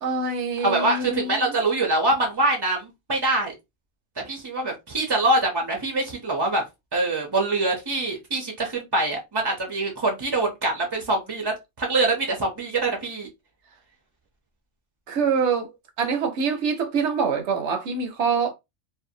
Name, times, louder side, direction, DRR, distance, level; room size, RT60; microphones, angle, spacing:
voice 1, 0.0-1.5 15.1-15.7 16.0-18.5, right 5 dB, 65° right, 0.8 m, -25 dB
voice 2, 0.6-3.5 4.2-6.6 6.9-13.3, right 2 dB, 40° right, 0.3 m, -24 dB
2.6 x 2.1 x 2.6 m
omnidirectional pair, 1.4 m